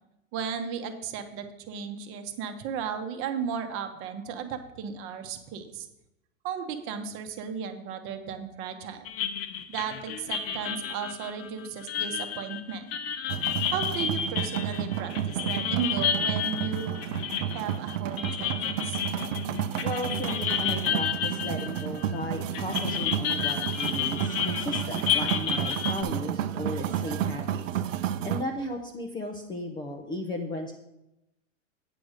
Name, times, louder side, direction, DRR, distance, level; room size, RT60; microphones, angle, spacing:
voice 1, 0.3-5.9 6.4-9.1 9.7-12.9 13.7-17.0 17.5-19.0, right 7 dB, 35° right, 7 dB, 0.9 m, -35 dB
sound 1, 9.1-22.2 22.5-26.0, left 8 dB, 45° left, 0.8 m, -31 dB
sound 2, 13.3-28.4, right 10 dB, 70° right, 0.7 m, -31 dB
voice 2, 19.8-27.8 28.2-30.7, left 1 dB, 10° left, 2 dB, 0.5 m, -35 dB
8.7 x 5.0 x 6.4 m, 0.90 s
hypercardioid pair, 140°, 39 cm